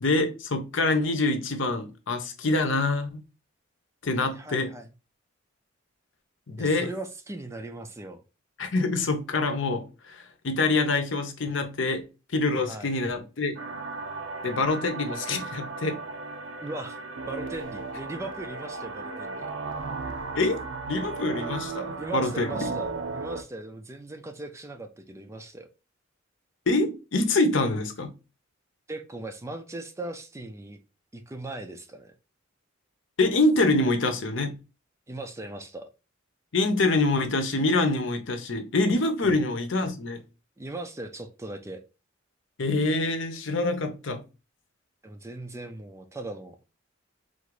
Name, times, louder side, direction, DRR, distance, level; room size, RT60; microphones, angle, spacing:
voice 1, 0.0-3.2 4.0-4.7 6.5-6.9 8.6-12.0 12.3-13.6 14.4-16.0 20.3-22.7 26.7-28.1 33.2-34.5 36.5-40.2 42.6-44.2, left 2 dB, 65° left, 0.8 m, -25 dB
voice 2, 4.2-4.9 6.6-8.2 12.7-12.9 16.6-17.0 17.3-19.5 21.4-21.5 22.0-25.7 28.9-30.8 31.1-32.1 35.1-35.9 39.2-39.4 40.6-41.8 45.0-46.6, right 2 dB, 15° right, 0.4 m, -38 dB
sound 1, 13.6-23.4, right 4 dB, 65° right, 0.6 m, -35 dB
3.9 x 2.5 x 4.7 m
head